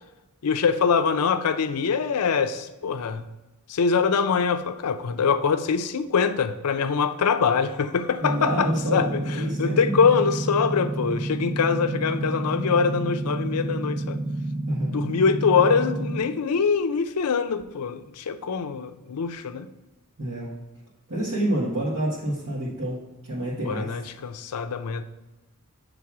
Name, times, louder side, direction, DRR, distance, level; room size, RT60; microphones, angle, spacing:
voice 1, 0.4-3.2 3.7-9.2 9.6-14.2 14.9-19.7 23.6-25.0, left 6 dB, 90° left, 10 dB, 0.5 m, -23 dB
voice 2, 8.2-10.0 14.7-14.9 20.2-20.5 21.1-23.9, right 1 dB, 70° right, -7 dB, 1.6 m, -28 dB
sound 1, 8.5-16.2, right 2 dB, 5° right, 0.6 m, -29 dB
7.2 x 3.4 x 4.7 m, 1.1 s
head